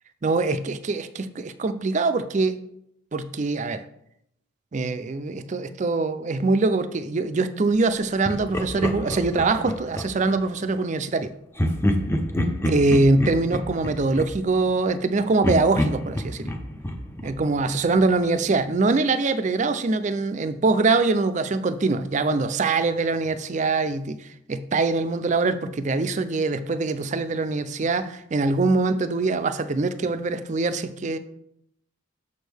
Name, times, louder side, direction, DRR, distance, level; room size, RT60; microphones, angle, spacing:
voice 1, 0.2-2.6 3.1-3.8 4.7-11.3 12.7-16.5 17.2-24.2 24.5-31.2, right 3 dB, 35° right, 11 dB, 0.4 m, -23 dB
Laughter, 8.2-10.4 11.6-15.1 15.4-18.2, left 1 dB, 10° left, 0.5 m, -28 dB
6.9 x 6.3 x 3.4 m, 0.75 s
head